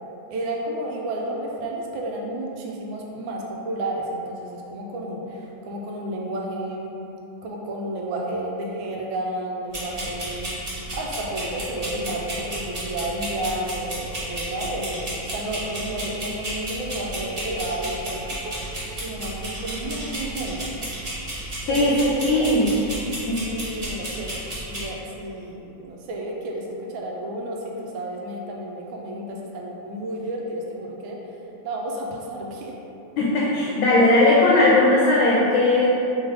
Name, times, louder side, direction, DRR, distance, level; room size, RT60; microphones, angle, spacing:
voice 1, 0.3-7.0 7.4-10.5 10.9-18.6 19.0-20.7 21.7-22.5 23.5-24.3 24.6-31.4 31.6-32.8, right 1 dB, 85° right, -1 dB, 1.4 m, -31 dB
sound 1, 9.7-24.8, right 1 dB, 40° right, 0.5 m, -33 dB
voice 2, 21.7-22.7 23.3-23.4 33.2-36.0, left 2 dB, 80° left, -5 dB, 1.3 m, -18 dB
3.5 x 3.5 x 3.3 m, 3.0 s
omnidirectional pair, 2.1 m